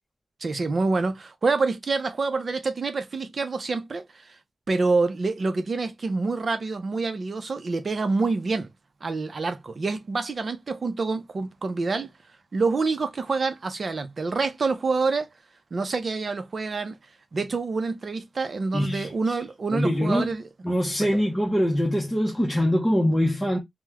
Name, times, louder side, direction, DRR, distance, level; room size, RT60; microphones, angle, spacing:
voice 1, 0.4-4.4 4.7-8.7 9.0-12.1 12.5-15.3 15.7-17.0 17.3-20.5 21.0-21.2, right 3 dB, 50° right, 0.5 m, -27 dB
voice 2, 18.7-19.1 19.7-20.3 20.6-23.6, equal, 10° left, 0.7 m, -23 dB
2.9 x 2.1 x 3.4 m
wide cardioid pair, 100°, 0 cm